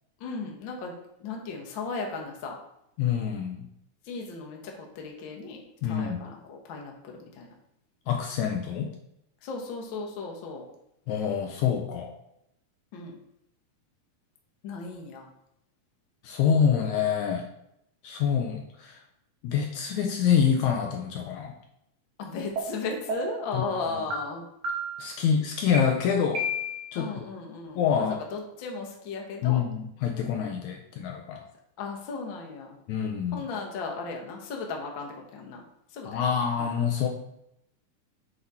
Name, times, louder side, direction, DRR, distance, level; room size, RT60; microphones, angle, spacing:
voice 1, 0.2-0.9 1.2-2.6 4.0-7.5 9.4-10.6 12.9-13.2 14.6-15.3 22.2-24.4 26.9-27.8 28.2-29.6 31.8-32.8 33.3-35.6 35.9-36.2 36.6-36.7, left 4 dB, 55° left, 1 dB, 1.4 m, -36 dB
voice 2, 3.0-3.6 5.8-6.2 8.1-8.9 11.1-12.2 16.2-17.5 18.0-19.0 19.4-21.5 23.5-23.6 25.0-26.5 26.9-27.3 27.8-28.2 29.4-31.4 32.9-33.4 36.1-37.1, left 7 dB, 75° left, 2 dB, 1.9 m, -26 dB
sound 1, 22.6-22.7 23.1-23.5 24.1-24.2 24.6-25.1 25.7-25.8 26.3-27.0, equal, 60° right, 2.3 m, -31 dB
7.7 x 4.0 x 4.2 m, 0.78 s
omnidirectional pair, 3.6 m